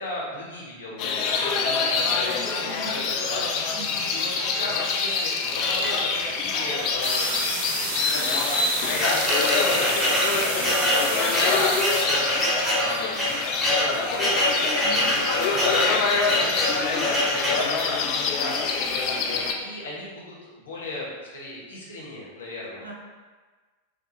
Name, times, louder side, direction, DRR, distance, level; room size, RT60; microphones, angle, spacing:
voice 1, 0.0-3.5 4.1-8.6 8.9-10.0 10.3-11.8 12.1-13.2 13.6-14.7 15.2-18.8 19.2-21.1 21.3-22.8, left 2 dB, 70° left, -5 dB, 1.1 m, -36 dB
sound 1, 1.0-19.5, left 4 dB, 40° left, 0.4 m, -26 dB
voice 2, 2.6-3.0 3.7-4.1 14.8-15.2 22.8-22.9, right 3 dB, 85° right, -2 dB, 0.6 m, -40 dB
sound 2, 5.6-6.4 7.2-7.3 7.6-7.7 8.4-17.7, left 1 dB, 15° right, 1.0 m, -25 dB
sound 3, 7.0-12.0, right 2 dB, 55° right, 0.8 m, -30 dB
5.1 x 2.2 x 3.0 m, 1.4 s
figure-of-eight pair, 90°, 0 cm